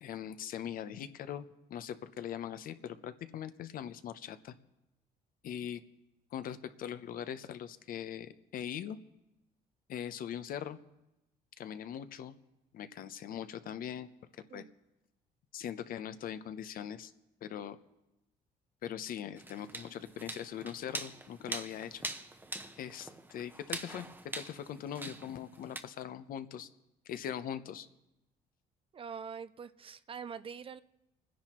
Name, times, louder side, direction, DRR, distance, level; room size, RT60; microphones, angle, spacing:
voice 1, 0.0-4.5 5.4-5.8 6.3-9.0 9.9-10.8 11.6-12.3 12.7-14.6 15.5-17.1 17.4-17.8 18.8-22.0 22.8-26.7 27.1-27.9, left 9 dB, 60° left, 0.7 m, -41 dB
sound 1, 19.4-25.8, right 2 dB, 10° right, 0.8 m, -43 dB
voice 2, 28.9-30.8, right 6 dB, 35° right, 0.4 m, -44 dB
29.5 x 10.5 x 3.0 m
cardioid pair, 110°, 17 cm